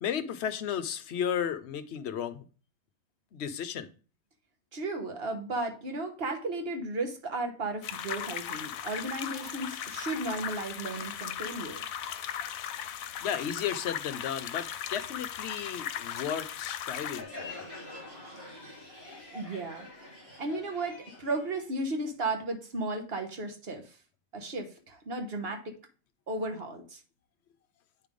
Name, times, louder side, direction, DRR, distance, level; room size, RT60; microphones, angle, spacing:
voice 1, 0.0-2.5 3.3-3.9 13.2-17.6, left 8 dB, 60° left, 0.8 m, -34 dB
voice 2, 4.7-11.8 19.3-19.9 20.4-23.9 24.3-25.6 26.3-27.0, right 2 dB, 45° right, 1.3 m, -34 dB
sound 1, 7.8-17.2, left 9 dB, 80° left, 1.0 m, -37 dB
Crowd, 17.0-22.4, left 2 dB, 80° right, 2.9 m, -46 dB
8.9 x 3.4 x 5.2 m
omnidirectional pair, 1.5 m